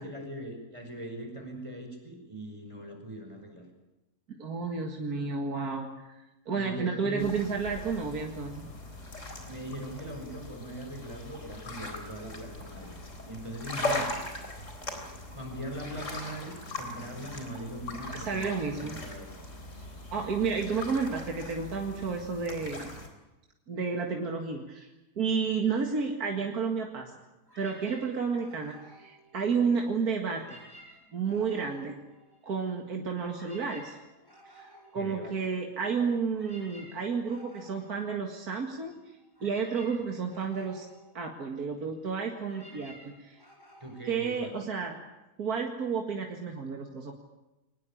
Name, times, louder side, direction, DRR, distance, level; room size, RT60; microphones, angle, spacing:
voice 1, 0.0-3.7 6.5-7.3 9.5-13.0 13.3-14.2 15.3-19.3 34.9-35.3 43.8-44.6, right 1 dB, 20° right, 3 dB, 5.2 m, -40 dB
voice 2, 4.4-8.7 18.1-19.0 20.1-22.9 23.7-24.9 25.2-27.1 27.6-30.6 31.1-31.9 32.4-34.0 34.5-38.9 39.4-40.9 41.1-43.4 44.0-45.0 45.4-47.2, right 5 dB, 75° right, 1 dB, 2.5 m, -31 dB
sound 1, 7.2-23.1, left 2 dB, 50° left, 4.2 m, -40 dB
sound 2, 27.4-29.9 30.2-32.8 33.1-45.0, right 1 dB, 15° left, 7.1 m, -55 dB
24.0 x 20.0 x 8.7 m, 1.0 s
omnidirectional pair, 1.6 m